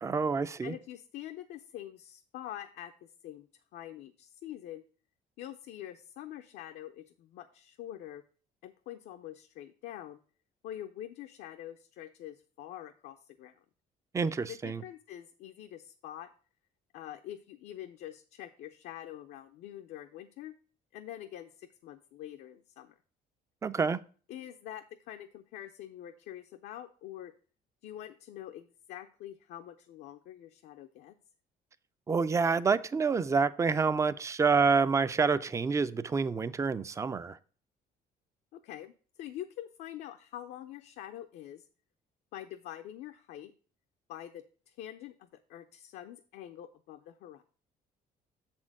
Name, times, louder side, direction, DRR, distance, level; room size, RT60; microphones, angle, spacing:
voice 1, 0.0-0.7 14.1-14.8 23.6-24.0 32.1-37.4, right 5 dB, 15° right, 0.4 m, -28 dB
voice 2, 0.6-4.9 5.4-8.2 8.6-10.2 10.6-13.6 14.5-16.3 16.9-20.5 20.9-23.0 24.3-27.3 27.8-31.2 38.5-41.7 42.3-43.5 44.1-47.4, left 12 dB, 75° left, 0.6 m, -45 dB
7.1 x 4.4 x 5.9 m
cardioid pair, 110°, 17 cm